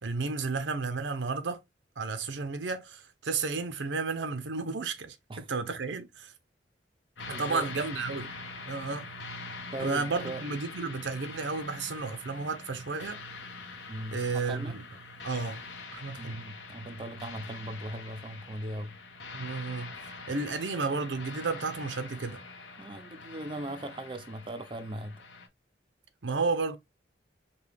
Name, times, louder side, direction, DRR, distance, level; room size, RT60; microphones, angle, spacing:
voice 1, 0.0-1.6 2.0-6.3 7.3-8.3 8.7-9.1 9.8-13.2 14.1-14.8 15.2-15.6 15.9-16.4 19.3-20.0 20.3-22.4 26.2-26.8, right 4 dB, 90° right, 0.7 m, -32 dB
sound 1, 7.2-25.5, left 3 dB, 80° left, 0.9 m, -44 dB
voice 2, 7.3-7.7 9.7-10.4 13.9-14.8 16.2-19.0 22.8-25.2, right 1 dB, 30° right, 0.5 m, -39 dB
5.3 x 2.3 x 3.4 m
head